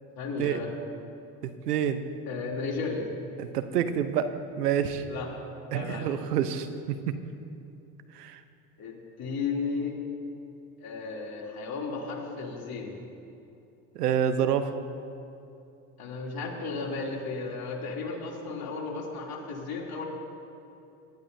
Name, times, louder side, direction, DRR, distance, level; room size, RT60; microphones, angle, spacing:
voice 1, 0.2-0.7 2.2-3.0 5.1-5.3 5.7-6.2 8.8-10.0 10.8-13.0 16.0-20.1, left 4 dB, 50° left, -2 dB, 3.0 m, -34 dB
voice 2, 1.4-2.0 3.4-5.0 5.7-7.2 8.1-8.4 13.9-14.7, right 9 dB, 90° right, 10 dB, 0.8 m, -28 dB
19.5 x 12.0 x 2.7 m, 2.8 s
hypercardioid pair, 70°, 46 cm